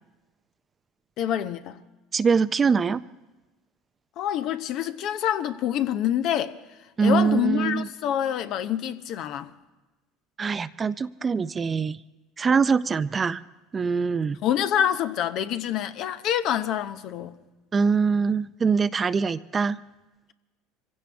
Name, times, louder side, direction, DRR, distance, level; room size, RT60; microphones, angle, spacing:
voice 1, 1.2-1.8 4.2-6.6 7.0-9.5 14.4-17.4, left 10 dB, 60° left, 0.8 m, -26 dB
voice 2, 2.1-3.0 7.0-7.9 10.4-12.0 12.4-13.4 13.7-14.4 17.7-19.8, right 5 dB, 30° right, 0.5 m, -23 dB
24.5 x 16.0 x 3.5 m
hypercardioid pair, 80°, 0 cm